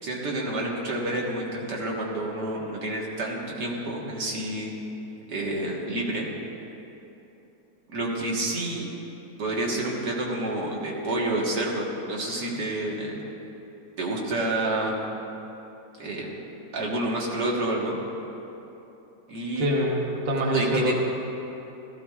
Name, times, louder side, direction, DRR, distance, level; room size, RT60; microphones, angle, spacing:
voice 1, 0.0-4.7 5.3-6.3 7.9-8.9 9.4-13.2 14.0-14.9 16.0-16.3 16.7-18.0 19.3-19.7 20.5-20.9, right 1 dB, 85° right, -3 dB, 2.1 m, -29 dB
voice 2, 19.6-20.9, equal, 40° right, -1 dB, 1.3 m, -24 dB
14.5 x 14.0 x 2.4 m, 3.0 s
omnidirectional pair, 1.8 m